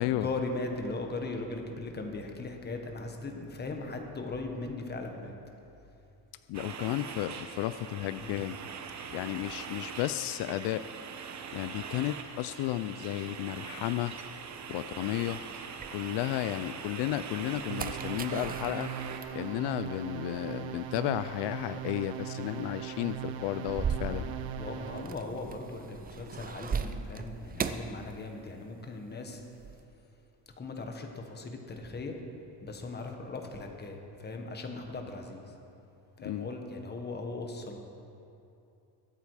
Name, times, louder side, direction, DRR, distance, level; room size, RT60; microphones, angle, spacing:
voice 1, 0.1-5.4 8.2-8.4 24.0-24.3 24.6-29.4 30.6-32.1 32.6-35.5 36.2-37.8, left 3 dB, 25° left, 3 dB, 1.4 m, -38 dB
voice 2, 6.5-8.6 9.1-10.9 11.5-14.1 14.7-15.4 15.9-18.9 19.3-24.3 36.2-36.5, left 14 dB, 80° left, 13 dB, 0.5 m, -33 dB
sound 1, 6.5-19.2, right 6 dB, 45° right, 1.0 m, -42 dB
sound 2, 13.8-16.5 17.0-28.8 29.0-29.8, right 6 dB, 20° right, 0.5 m, -40 dB
sound 3, 17.7-25.3, right 9 dB, 60° right, 0.8 m, -39 dB
22.5 x 8.5 x 4.9 m, 2.8 s
cardioid pair, 155°, 41 cm